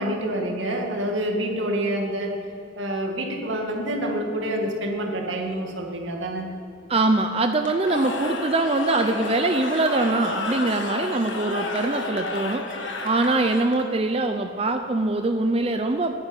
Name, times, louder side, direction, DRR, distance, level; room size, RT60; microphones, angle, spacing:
voice 1, 0.0-2.3 2.8-6.5, right 1 dB, 80° right, 1 dB, 2.2 m, -27 dB
voice 2, 6.9-12.6 13.0-16.1, right 2 dB, 30° right, 6 dB, 0.5 m, -23 dB
Cheering / Crowd, 7.6-14.0, left 2 dB, 75° left, 1.6 m, -31 dB
11.0 x 10.0 x 9.9 m, 2.7 s
head